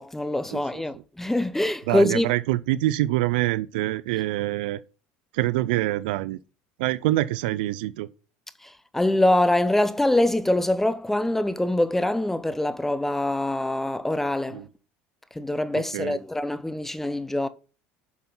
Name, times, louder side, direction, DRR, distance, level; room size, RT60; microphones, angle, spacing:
voice 1, 0.0-2.3 8.6-14.6 15.3-17.5, left 1 dB, 5° left, 0.8 m, -24 dB
voice 2, 0.5-1.0 1.9-4.8 5.3-6.4 6.8-8.1 14.5-14.7 15.7-16.2, right 16 dB, 85° right, 0.5 m, -26 dB
9.5 x 6.1 x 5.6 m
supercardioid pair, 110°, 5 cm